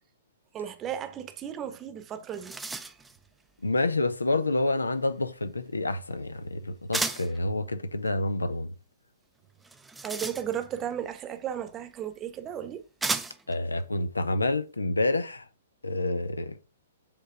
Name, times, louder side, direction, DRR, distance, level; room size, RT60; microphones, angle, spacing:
voice 1, 0.5-2.9 10.0-12.8, right 9 dB, 25° right, 1.0 m, -35 dB
sound 1, 1.8-1.9 2.2-3.2 6.9-7.4 9.6-10.8 11.9-12.0 13.0-13.6, right 3 dB, 5° right, 0.6 m, -33 dB
voice 2, 3.6-8.7 13.5-15.5 15.8-16.6, left 2 dB, 80° left, 0.7 m, -28 dB
7.6 x 3.4 x 5.9 m
figure-of-eight pair, 115°, 0 cm